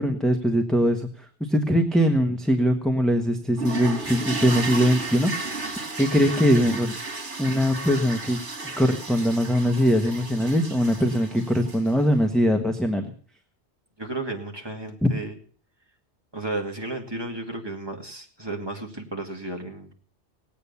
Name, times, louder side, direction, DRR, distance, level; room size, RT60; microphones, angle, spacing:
voice 1, 0.0-5.6 6.0-7.0 7.4-8.4 8.8-13.1 15.0-15.1, equal, ahead, 3 dB, 1.2 m, -22 dB
sound 1, 3.6-12.0, right 3 dB, 85° right, 2.6 m, -34 dB
voice 2, 14.0-15.4 16.3-19.9, right 2 dB, 20° right, 1 dB, 2.4 m, -33 dB
18.5 x 8.7 x 7.0 m, 0.44 s
omnidirectional pair, 1.2 m